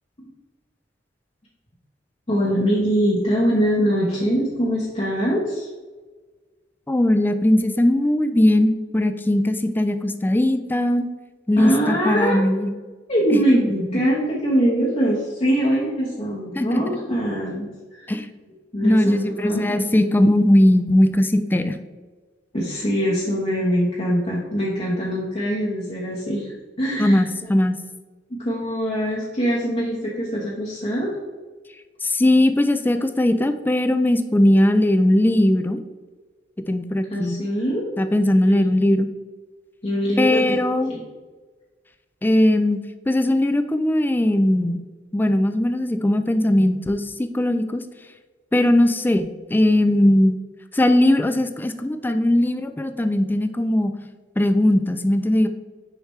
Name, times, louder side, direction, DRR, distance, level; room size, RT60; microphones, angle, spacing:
voice 1, 2.3-5.7 11.6-12.4 13.1-18.1 18.7-19.9 22.5-27.2 28.3-31.1 37.1-37.9 39.8-40.6 40.9-41.0, equal, 35° left, -5 dB, 1.0 m, -23 dB
voice 2, 6.9-11.1 11.5-12.7 13.3-13.4 13.9-14.0 16.6-16.8 18.1-18.3 18.8-21.8 27.0-27.8 32.0-35.8 36.7-37.4 38.0-39.1 40.2-41.0 42.2-42.8 43.1-44.8 45.1-47.8 48.5-50.4 50.7-53.9 54.4-55.5, left 1 dB, 10° left, 9 dB, 0.3 m, -19 dB
6.5 x 4.9 x 3.1 m, 1.4 s
head